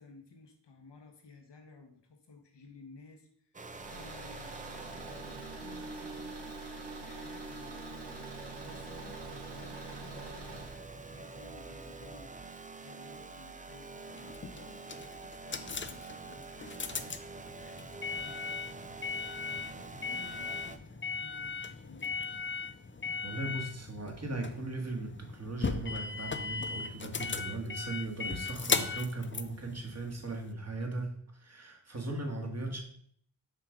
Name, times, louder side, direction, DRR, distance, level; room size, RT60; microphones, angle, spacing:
voice 1, 0.0-6.7 6.9-8.3 8.6-12.3 12.8-14.0 14.5-18.8 19.3-22.4, left 3 dB, 70° left, 4 dB, 1.2 m, -55 dB
sound 1, 3.5-20.8, right 4 dB, 20° right, 0.5 m, -46 dB
Car / Engine, 3.7-10.8, right 2 dB, 75° right, 1.4 m, -47 dB
sound 2, 14.1-30.5, left 4 dB, 25° left, 0.5 m, -38 dB
voice 2, 23.2-32.8, right 2 dB, 35° right, 2 dB, 1.7 m, -38 dB
5.8 x 3.4 x 5.0 m, 0.64 s
cardioid pair, 40°, 44 cm